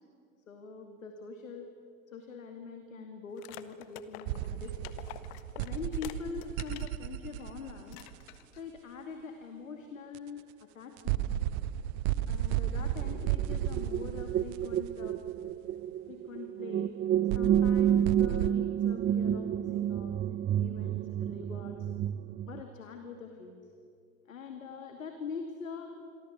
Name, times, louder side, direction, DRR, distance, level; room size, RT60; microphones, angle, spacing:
voice 1, 0.5-1.7 2.1-5.0 5.6-8.0 8.6-11.3 12.3-15.2 16.1-16.9 17.3-20.2 20.5-21.9 22.5-23.7 24.3-25.9, left 5 dB, 80° left, 5 dB, 2.4 m, -44 dB
sound 1, 3.4-7.0 7.4-7.5 7.9-8.6, left 14 dB, 55° left, 1.5 m, -48 dB
sound 2, 4.3-8.4 10.1-10.2 11.0-15.5 17.3-18.5, right 12 dB, 50° right, 1.0 m, -34 dB
sound 3, 13.0-22.6, right 10 dB, 25° right, 0.7 m, -30 dB
27.5 x 23.0 x 8.3 m, 2.4 s
figure-of-eight pair, 80°, 39 cm